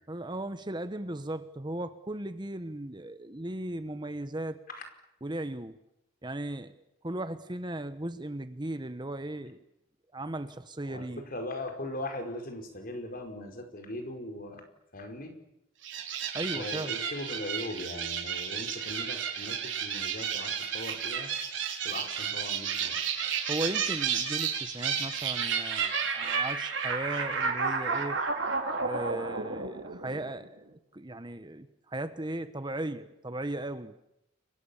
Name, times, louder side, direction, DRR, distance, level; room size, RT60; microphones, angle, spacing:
voice 1, 0.1-4.6 5.2-5.8 6.2-6.7 7.0-9.6 10.1-11.2 16.3-17.0 23.5-28.2 28.8-33.9, right 1 dB, 25° right, 11 dB, 1.1 m, -37 dB
voice 2, 11.3-14.6 14.9-15.3 16.5-21.3 21.8-23.0, left 1 dB, 45° left, 5 dB, 5.2 m, -39 dB
sound 1, 15.8-30.5, right 6 dB, 70° right, 5.0 m, -32 dB
30.0 x 23.5 x 7.3 m, 0.84 s
head